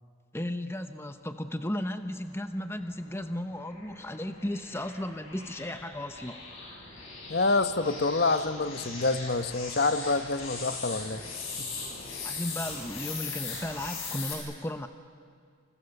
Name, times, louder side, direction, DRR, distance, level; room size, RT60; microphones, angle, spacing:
voice 1, 0.3-6.4 12.2-14.9, left 1 dB, 10° left, 8 dB, 0.9 m, -35 dB
sound 1, 2.8-14.3, left 4 dB, 65° left, 7.9 m, -40 dB
voice 2, 7.3-11.2 11.6-11.7, left 3 dB, 45° left, 10 dB, 1.0 m, -27 dB
30.0 x 28.0 x 6.8 m, 2.2 s
head